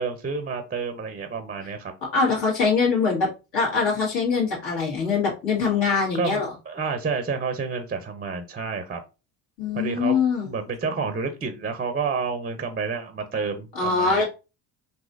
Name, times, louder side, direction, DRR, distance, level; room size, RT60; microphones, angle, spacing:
voice 1, 0.0-1.9 6.2-9.0 9.7-10.2 10.4-14.2, right 5 dB, 20° right, 8 dB, 0.6 m, -29 dB
voice 2, 2.1-6.5 9.6-10.5 13.7-14.2, left 4 dB, 65° left, -4 dB, 1.7 m, -23 dB
3.9 x 2.7 x 2.5 m, 0.29 s
hypercardioid pair, 65°, 47 cm